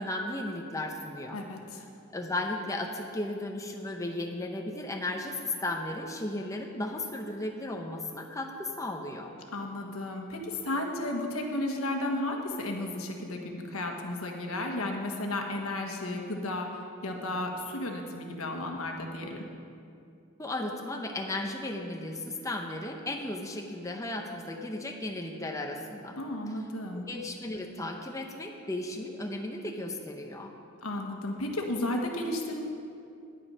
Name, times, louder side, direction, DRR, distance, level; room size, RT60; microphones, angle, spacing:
voice 1, 0.0-1.4 2.1-9.3 20.4-26.2 26.9-30.5, left 1 dB, 15° left, 2 dB, 0.7 m, -35 dB
voice 2, 1.3-1.8 9.5-19.4 26.2-27.0 30.8-32.6, left 1 dB, 80° left, 2 dB, 1.3 m, -33 dB
10.0 x 10.0 x 5.5 m, 2.5 s
head